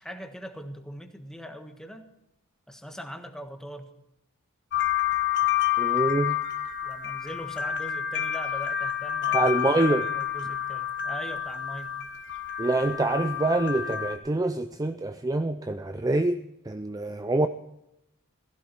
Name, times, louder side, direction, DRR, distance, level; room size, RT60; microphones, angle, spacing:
voice 1, 0.0-2.1 2.7-3.9 6.8-9.5 10.1-12.0, equal, 5° left, 1.5 m, -41 dB
sound 1, 4.7-14.2, left 10 dB, 55° left, 1.4 m, -29 dB
voice 2, 5.8-6.4 9.3-10.1 12.6-16.4 16.7-17.5, right 2 dB, 15° right, 0.4 m, -25 dB
16.0 x 15.0 x 4.6 m
head